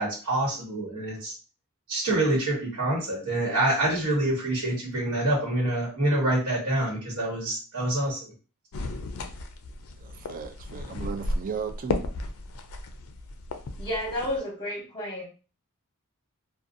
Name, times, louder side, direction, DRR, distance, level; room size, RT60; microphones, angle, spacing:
voice 1, 0.0-1.3 1.9-8.3, right 1 dB, 80° right, 1.2 m, -26 dB
sound 1, 8.7-14.4, left 2 dB, 70° left, 0.4 m, -34 dB
voice 2, 10.0-12.1, right 6 dB, 40° right, 0.4 m, -36 dB
voice 3, 13.8-15.2, left 1 dB, 25° left, 0.8 m, -31 dB
2.5 x 2.2 x 2.6 m
head